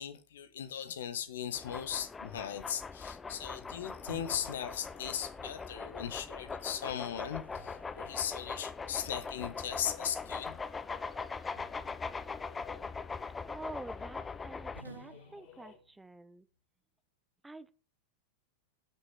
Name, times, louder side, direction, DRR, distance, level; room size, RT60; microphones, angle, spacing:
voice 1, 0.0-10.6, left 9 dB, 60° left, 1.5 m, -38 dB
sound 1, 1.5-14.8, left 4 dB, 15° left, 0.7 m, -41 dB
sound 2, 3.7-15.8, left 7 dB, 40° left, 3.9 m, -58 dB
sound 3, 4.1-5.5 6.8-8.9 11.6-12.4 14.7-16.2, right 2 dB, 80° right, 1.1 m, -54 dB
voice 2, 13.5-16.5 17.4-17.7, right 2 dB, 5° right, 0.9 m, -48 dB
11.0 x 6.7 x 5.9 m
figure-of-eight pair, 90°, 0 cm